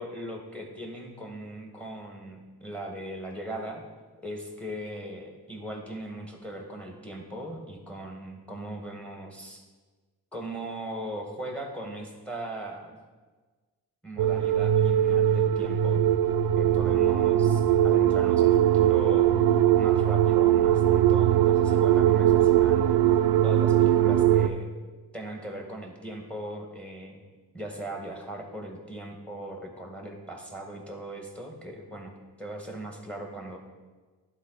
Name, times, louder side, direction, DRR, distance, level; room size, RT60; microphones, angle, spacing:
voice 1, 0.0-3.8 4.2-9.6 10.3-13.0 14.0-16.0 16.6-19.3 19.8-22.9 23.4-24.7 25.1-27.2 27.5-33.6, right 1 dB, 5° left, 1 dB, 1.9 m, -39 dB
sound 1, 14.2-24.5, right 11 dB, 55° right, 0.6 m, -21 dB
11.0 x 4.1 x 4.1 m, 1.3 s
supercardioid pair, 55°, 42 cm